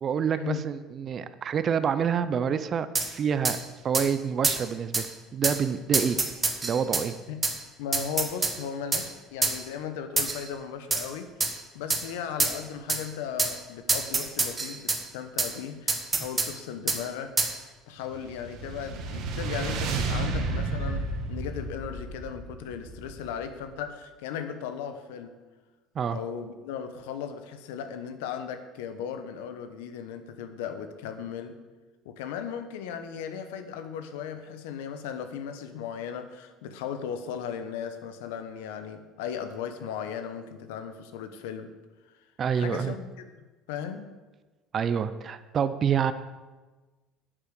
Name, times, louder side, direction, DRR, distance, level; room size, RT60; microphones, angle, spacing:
voice 1, 0.0-3.6 3.8-5.1 5.3-6.2 6.6-7.1 26.0-26.2 42.4-42.9 44.7-46.1, right 7 dB, 45° right, 12 dB, 0.6 m, -27 dB
sound 1, 2.9-3.1 3.4-3.6 3.9-4.1 4.4-4.6 4.9-5.1 5.4-5.6 5.9-7.1 7.4-7.6 7.9-8.6 8.9-9.1 9.4-9.6 10.2-10.4 10.9-11.1 11.4-11.5 11.9-12.0 12.4-12.6 12.9-13.0 13.4-13.5 13.9-15.0 15.4-15.5 15.9-16.5 16.9-17.0 17.4-17.5, right 3 dB, 25° right, 1.5 m, -26 dB
voice 2, 7.8-25.3 26.1-31.5 32.0-41.7 42.5-43.1 43.7-44.1, left 8 dB, 85° left, 9 dB, 1.0 m, -37 dB
sound 2, 18.1-23.5, right 3 dB, 65° right, 1.7 m, -32 dB
9.4 x 7.5 x 6.8 m, 1.2 s
supercardioid pair, 85°, 0 cm